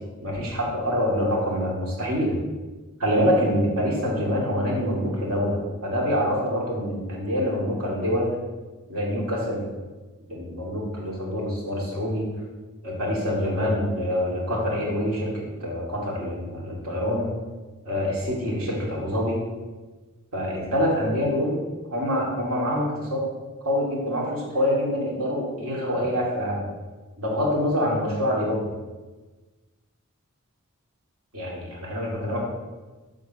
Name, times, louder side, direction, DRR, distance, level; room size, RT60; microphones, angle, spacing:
voice 1, 0.2-2.4 3.0-8.3 8.9-9.6 10.3-12.3 12.8-17.3 17.8-19.4 20.3-21.6 21.9-23.3 23.6-26.6 27.2-28.7 31.3-32.4, equal, 70° right, -4 dB, 2.9 m, -25 dB
10.5 x 4.0 x 6.4 m, 1.3 s
head